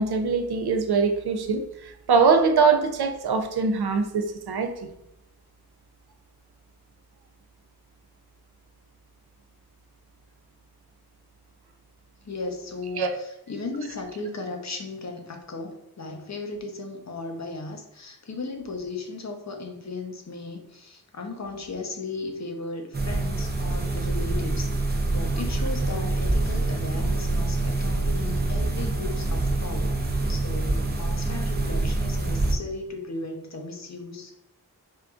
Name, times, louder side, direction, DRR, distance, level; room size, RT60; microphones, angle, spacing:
voice 1, 0.0-4.9 13.0-13.1, right 5 dB, 80° right, 6 dB, 0.5 m, -23 dB
voice 2, 12.2-30.0 30.3-34.3, left 3 dB, 45° left, 3 dB, 0.7 m, -36 dB
sound 1, 22.9-32.5, right 2 dB, 25° right, 0.5 m, -26 dB
4.5 x 2.5 x 2.3 m, 0.86 s
wide cardioid pair, 60°, 38 cm